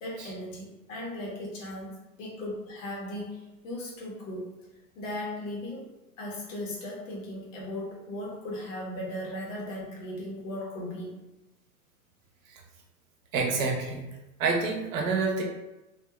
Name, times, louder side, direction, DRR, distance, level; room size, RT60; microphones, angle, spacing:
voice 1, 0.0-4.5 4.9-5.8 6.2-11.2, left 1 dB, 60° left, -3 dB, 1.2 m, -37 dB
voice 2, 13.3-14.0 14.4-15.4, right 4 dB, 65° right, 1 dB, 0.8 m, -27 dB
2.7 x 2.6 x 2.3 m, 1.0 s
hypercardioid pair, 105°, 43 cm